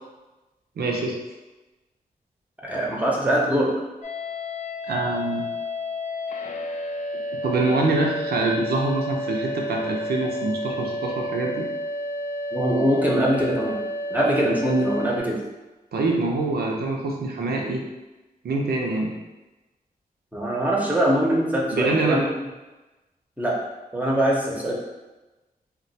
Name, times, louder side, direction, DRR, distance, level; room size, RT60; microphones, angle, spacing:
voice 1, 0.8-1.2 4.9-5.4 7.4-11.7 15.9-17.8 18.4-19.1 21.7-22.2, right 2 dB, 85° right, -1 dB, 0.5 m, -25 dB
voice 2, 2.6-3.7 12.5-13.8 14.1-15.4 20.3-22.3 23.4-23.6 23.9-24.7, right 1 dB, 10° right, -4 dB, 0.7 m, -22 dB
sound 1, 4.0-15.2, left 1 dB, 50° left, 0.4 m, -31 dB
2.3 x 2.2 x 3.9 m, 1.1 s
wide cardioid pair, 75°, 16 cm